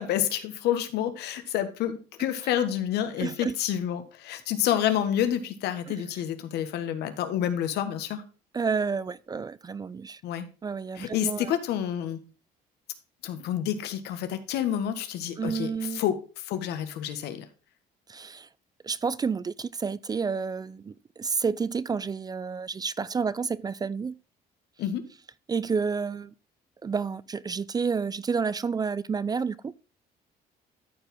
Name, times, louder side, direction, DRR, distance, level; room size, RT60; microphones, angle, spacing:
voice 1, 0.0-8.2 10.2-10.5 11.0-12.2 13.2-16.2 16.4-17.4 24.8-25.1, left 10 dB, 80° left, 1.5 m, -29 dB
voice 2, 3.2-3.5 5.9-6.0 8.5-10.2 10.6-11.5 15.4-16.0 18.1-18.5 18.8-24.1 25.5-26.3 26.8-29.7, right 5 dB, 25° right, 0.4 m, -30 dB
13.5 x 4.8 x 3.7 m
cardioid pair, 110°, 17 cm